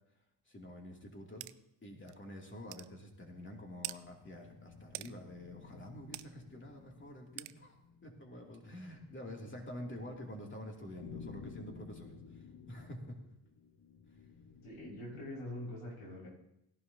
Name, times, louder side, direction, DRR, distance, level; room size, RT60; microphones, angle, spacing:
voice 1, 0.5-1.5 1.8-7.8 8.0-13.2, left 1 dB, 25° left, 1 dB, 2.7 m, -48 dB
sound 1, 1.4-1.5 2.1-2.2 2.7-2.9 3.8-4.0 4.9-5.1 6.1-6.3 7.4-7.5, right 19 dB, 85° right, 0.5 m, -42 dB
sound 2, 3.2-15.5, left 5 dB, 45° left, 1.4 m, -55 dB
voice 2, 14.6-16.3, left 1 dB, 80° left, -4 dB, 5.8 m, -44 dB
17.5 x 11.0 x 2.8 m, 0.82 s
cardioid pair, 80°, 49 cm